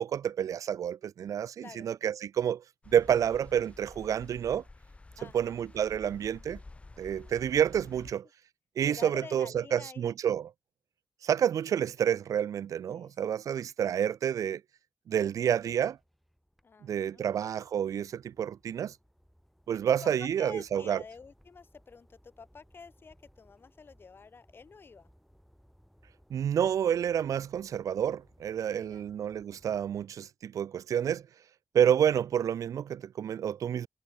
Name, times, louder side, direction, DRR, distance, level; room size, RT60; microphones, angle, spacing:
voice 1, 0.0-4.6 5.3-6.6 7.0-8.3 8.8-10.5 11.2-14.6 15.1-16.0 16.8-18.9 19.7-21.0 26.3-31.3 31.7-33.9, right 9 dB, 85° right, 0.6 m, -29 dB
sound 1, 2.8-8.1, left 2 dB, 20° left, 5.0 m, -51 dB
voice 2, 5.2-5.6 8.9-10.2 12.9-13.1 16.6-17.3 19.7-25.1 28.6-29.1, left 5 dB, 40° left, 1.8 m, -49 dB
sound 2, 15.4-30.1, equal, ahead, 3.4 m, -63 dB
wide cardioid pair, 130°, 6 cm